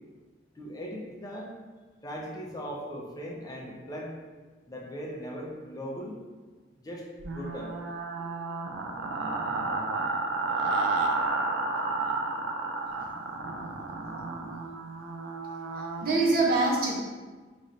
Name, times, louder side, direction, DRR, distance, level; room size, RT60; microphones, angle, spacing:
voice 1, 0.5-1.5 2.0-4.1 4.7-6.2 6.8-7.7 8.2-8.3 13.0-13.1 13.6-13.7, equal, 20° left, -3 dB, 0.6 m, -39 dB
sound 1, 7.2-16.1, right 3 dB, 85° right, 0.4 m, -31 dB
voice 2, 15.8-16.9, right 2 dB, 50° right, -3 dB, 0.8 m, -25 dB
3.2 x 2.5 x 4.0 m, 1.3 s
head